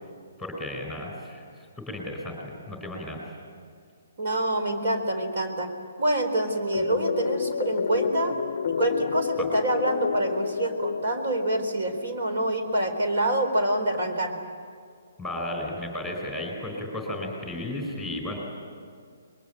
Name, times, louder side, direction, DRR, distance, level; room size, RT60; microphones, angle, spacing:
voice 1, 0.4-1.4 1.9-3.4 15.2-18.4, left 1 dB, ahead, 1 dB, 4.5 m, -34 dB
voice 2, 4.2-5.7 6.0-8.3 8.7-14.4, right 1 dB, 55° right, 5 dB, 4.1 m, -26 dB
sound 1, 6.7-11.9, left 7 dB, 50° left, 0.6 m, -30 dB
27.0 x 22.0 x 9.0 m, 2.2 s
hypercardioid pair, 170°, 0 cm